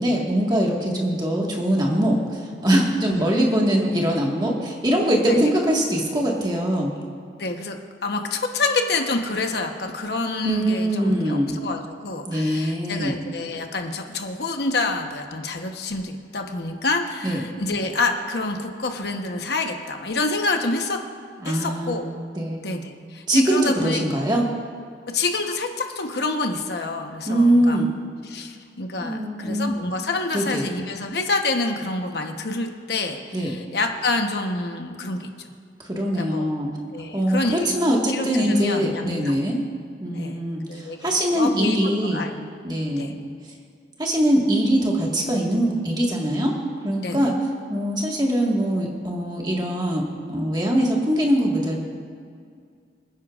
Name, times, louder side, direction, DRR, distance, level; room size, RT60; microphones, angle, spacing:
voice 1, 0.0-6.9 10.4-11.6 12.3-13.1 17.2-17.4 21.4-22.1 22.3-22.7 23.3-24.4 27.3-27.9 29.0-29.7 30.3-30.6 33.3-33.5 35.9-36.7 37.1-39.6 40.0-42.2 42.6-43.1 44.0-46.5 46.8-47.3 47.7-51.8, right 1 dB, 25° right, -2 dB, 1.7 m, -22 dB
voice 2, 7.4-21.0 21.4-22.1 22.6-24.0 25.1-27.8 28.2-35.3 36.2-36.5 36.9-37.7 38.1-39.4 40.1-40.4 40.7-41.8 42.1-42.3 43.0-43.1 47.0-47.3, left 3 dB, 65° left, 4 dB, 1.1 m, -27 dB
26.5 x 10.0 x 2.5 m, 2.2 s
head